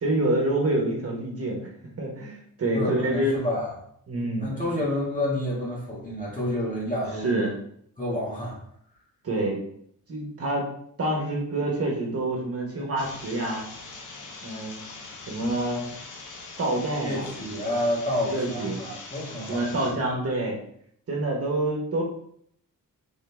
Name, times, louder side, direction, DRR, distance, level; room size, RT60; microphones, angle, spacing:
voice 1, 0.0-1.7 2.0-3.3 4.1-4.5 7.2-7.6 9.2-9.6 10.1-10.7 11.0-13.6 14.4-14.8 15.3-15.8 16.6-17.6 18.2-18.8 19.5-20.6 21.1-22.0, right 1 dB, 45° right, -1 dB, 1.2 m, -27 dB
voice 2, 2.7-3.7 4.4-7.4 8.0-8.6 17.0-19.7, left 1 dB, 25° left, -5 dB, 1.9 m, -29 dB
sound 1, 13.0-19.9, left 3 dB, 65° left, 1.0 m, -42 dB
4.1 x 3.7 x 3.5 m, 0.67 s
cardioid pair, 120°, 33 cm